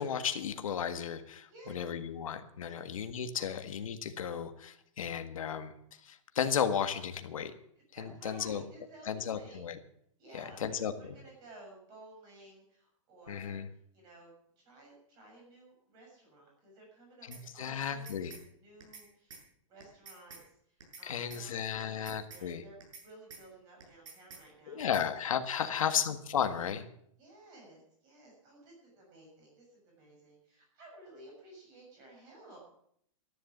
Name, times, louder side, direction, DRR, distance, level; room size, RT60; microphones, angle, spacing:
voice 1, 0.0-5.7 6.0-7.5 8.0-8.6 9.1-9.8 10.3-10.9 13.3-13.7 17.3-18.4 21.0-22.6 24.7-26.9, left 8 dB, 85° left, 7 dB, 1.7 m, -34 dB
voice 2, 7.9-9.6 10.2-13.6 13.9-19.4 19.7-25.1 25.6-25.9 27.2-32.6, right 2 dB, 25° right, -1 dB, 6.8 m, -55 dB
sound 1, 17.3-17.4 17.8-18.4 18.8-19.0 19.3-19.4 19.8-20.4 20.8-21.0 21.3-21.4 21.8-22.4 22.8-23.0 23.3-23.4 23.8-24.4 24.8-25.0, right 5 dB, 65° right, 7.8 m, -50 dB
13.5 x 11.5 x 7.3 m, 0.69 s
hypercardioid pair, 175°, 17 cm